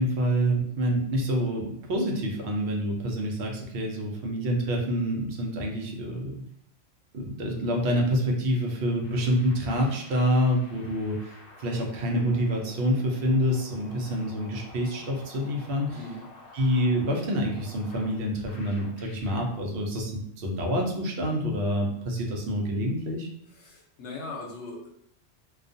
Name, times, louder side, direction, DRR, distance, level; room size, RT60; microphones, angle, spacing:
voice 1, 0.0-6.4 7.1-16.0 16.5-23.3, equal, 65° right, 1 dB, 0.8 m, -27 dB
sound 1, 9.0-19.5, left 2 dB, 65° left, 0.7 m, -50 dB
voice 2, 23.5-24.9, left 2 dB, 85° left, -1 dB, 1.0 m, -40 dB
2.3 x 2.2 x 2.5 m, 0.71 s
omnidirectional pair, 1.2 m